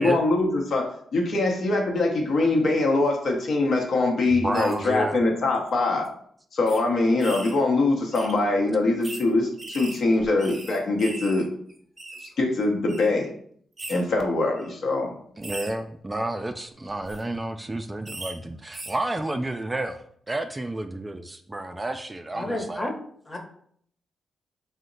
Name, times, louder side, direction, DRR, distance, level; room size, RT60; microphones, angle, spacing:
voice 1, 0.0-6.1 6.5-11.5 12.4-13.3 13.9-15.1, left 2 dB, 65° left, 1 dB, 0.7 m, -23 dB
voice 2, 4.3-5.2 15.4-22.9, right 1 dB, 20° right, 7 dB, 0.3 m, -31 dB
sound 1, 4.5-4.7 5.5-5.7 6.0-6.1 6.7-6.8 7.2-7.6 8.1-8.3 9.0-9.2 9.6-11.4 11.7-12.3 12.9-13.1 13.8-14.0 14.6-14.7 15.4-15.7 16.9-17.2 18.1-18.3 18.7-19.0, right 2 dB, 40° right, 0.8 m, -39 dB
voice 3, 22.3-22.9 23.3-23.4, left 1 dB, 25° left, 2 dB, 0.9 m, -30 dB
2.8 x 2.1 x 3.8 m, 0.62 s
hypercardioid pair, 45°, 0 cm